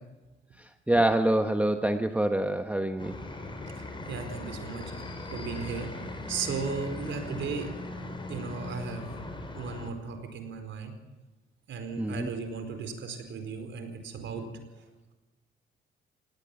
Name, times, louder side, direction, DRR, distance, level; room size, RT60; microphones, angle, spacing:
voice 1, 0.6-3.2 12.0-12.3, right 1 dB, 5° right, 7 dB, 1.1 m, -26 dB
sound 1, 3.0-9.9, left 2 dB, 25° left, 4.5 m, -39 dB
voice 2, 3.8-4.9 5.3-5.9 6.3-7.7 8.3-9.1 9.5-10.9 11.7-14.4 14.8-14.9, right 5 dB, 70° right, 7 dB, 4.6 m, -36 dB
18.5 x 17.5 x 9.7 m, 1.1 s
cardioid pair, 90°, 20 cm